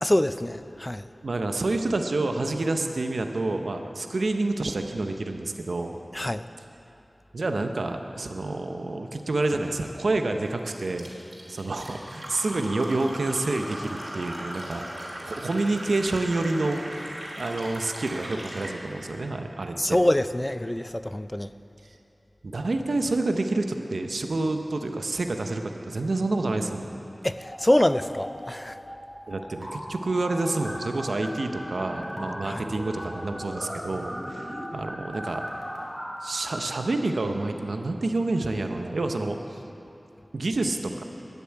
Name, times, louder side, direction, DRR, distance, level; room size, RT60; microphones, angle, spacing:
voice 1, 0.0-1.1 6.1-6.4 19.8-21.5 27.2-28.8 32.5-32.6, left 1 dB, 20° left, 12 dB, 0.4 m, -25 dB
voice 2, 1.2-5.9 7.3-11.1 11.5-14.8 15.2-17.0 17.4-20.0 22.4-27.0 29.3-35.4 36.2-39.6 40.3-41.0, right 2 dB, 90° right, 5 dB, 0.7 m, -28 dB
Fill (with liquid), 10.7-18.8, right 1 dB, 55° right, 3.1 m, -38 dB
sound 1, 27.4-28.3 28.6-36.6, equal, 5° right, 3.0 m, -38 dB
12.5 x 6.9 x 8.6 m, 2.9 s
wide cardioid pair, 50°, 0 cm